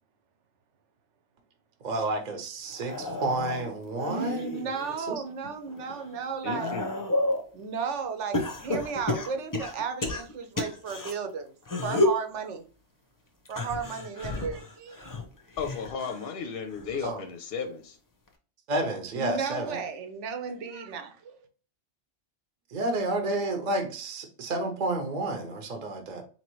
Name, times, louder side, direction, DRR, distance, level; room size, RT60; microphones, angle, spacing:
voice 1, 1.8-4.5 5.0-5.2 17.0-17.2 18.7-19.8 22.7-26.2, right 2 dB, 45° right, 0.8 m, -30 dB
sound 1, 2.7-5.0 5.5-7.5 8.3-11.1 11.6-12.3 13.4-16.3 16.7-17.1 18.3-18.4, left 2 dB, 25° left, 0.4 m, -31 dB
voice 2, 4.0-6.8 7.5-11.5 11.8-12.6 13.5-15.1 19.1-21.4, right 5 dB, 70° right, 1.0 m, -34 dB
voice 3, 6.4-6.9 15.6-18.0, left 5 dB, 60° left, 0.7 m, -34 dB
4.3 x 2.9 x 3.0 m
omnidirectional pair, 1.3 m